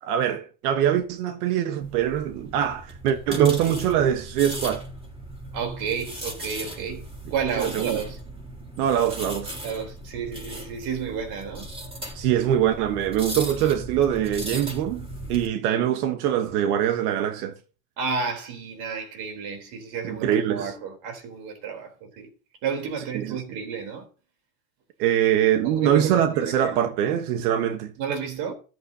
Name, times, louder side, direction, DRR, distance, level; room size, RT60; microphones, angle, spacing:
voice 1, 0.0-4.8 7.6-8.0 8.8-9.6 12.1-17.5 20.0-20.7 23.1-23.4 25.0-27.9, right 10 dB, 80° right, 1.3 m, -23 dB
sound 1, 1.8-15.5, right 1 dB, 15° right, 3.7 m, -37 dB
voice 2, 5.5-8.2 9.6-11.7 18.0-22.3 22.6-24.1 25.6-26.7 28.0-28.5, right 6 dB, 55° right, 3.8 m, -31 dB
13.5 x 11.0 x 2.8 m
supercardioid pair, 135°, 45 cm